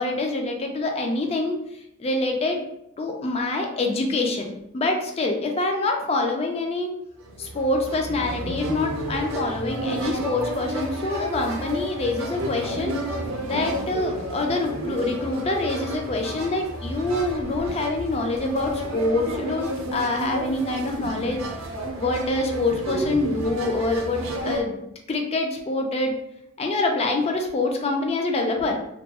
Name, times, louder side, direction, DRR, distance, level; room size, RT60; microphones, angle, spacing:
voice 1, 0.0-1.5 2.0-2.6 3.0-7.0 7.4-13.0 13.4-21.4 22.0-24.8 25.1-26.2 26.6-28.8, left 2 dB, 30° left, 3 dB, 0.3 m, -25 dB
sound 1, 7.2-24.6, right 1 dB, 70° right, 0.5 m, -31 dB
2.3 x 2.3 x 2.8 m, 0.82 s
head